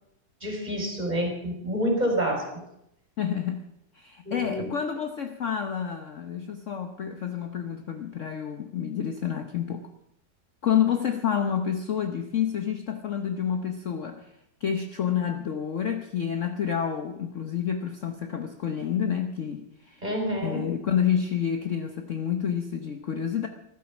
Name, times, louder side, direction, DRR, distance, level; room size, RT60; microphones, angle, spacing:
voice 1, 0.4-2.4 4.3-4.7 20.0-20.6, equal, 20° right, 1 dB, 4.5 m, -28 dB
voice 2, 3.2-3.6 3.9-9.9 10.6-14.3 14.6-20.0 20.4-23.5, left 8 dB, 50° left, 6 dB, 1.1 m, -29 dB
14.5 x 12.0 x 7.1 m, 0.81 s
omnidirectional pair, 1.9 m